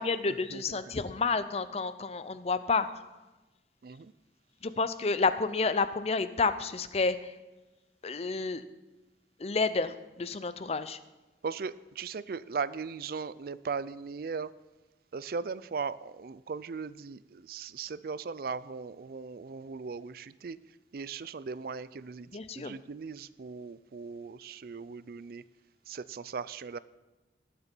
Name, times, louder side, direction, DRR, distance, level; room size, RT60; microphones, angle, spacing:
voice 1, 0.0-3.1 4.6-7.4 8.0-8.6 9.4-11.0 22.3-22.8, left 4 dB, 35° left, 13 dB, 0.5 m, -30 dB
voice 2, 11.4-14.5 15.1-20.6 20.9-22.3 22.6-25.4 25.9-26.8, right 5 dB, 55° right, 17 dB, 0.4 m, -38 dB
18.5 x 6.8 x 4.5 m, 1.1 s
head